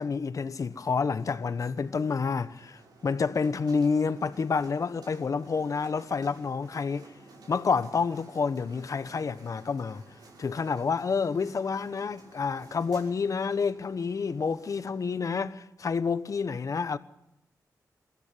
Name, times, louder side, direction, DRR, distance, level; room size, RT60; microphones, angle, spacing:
voice 1, 0.0-7.1 7.5-10.0 10.4-17.0, left 5 dB, 55° left, 1.1 m, -29 dB
sound 1, 0.7-15.2, right 3 dB, 85° right, 5.9 m, -54 dB
22.0 x 14.5 x 9.9 m
cardioid pair, 80°, 7 cm